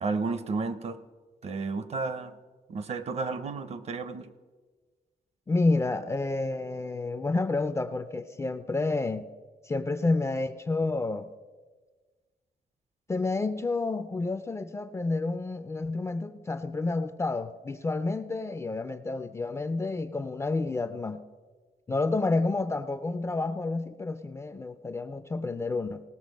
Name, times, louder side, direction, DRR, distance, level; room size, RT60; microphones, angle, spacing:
voice 1, 0.0-1.0 1.4-2.3 2.7-4.3, right 4 dB, 40° right, 13 dB, 0.6 m, -32 dB
voice 2, 5.5-9.3 9.6-11.3 13.1-21.2 21.9-26.0, left 3 dB, 20° left, 11 dB, 0.3 m, -29 dB
18.0 x 6.8 x 5.2 m, 1.4 s
wide cardioid pair, 180°, 16 cm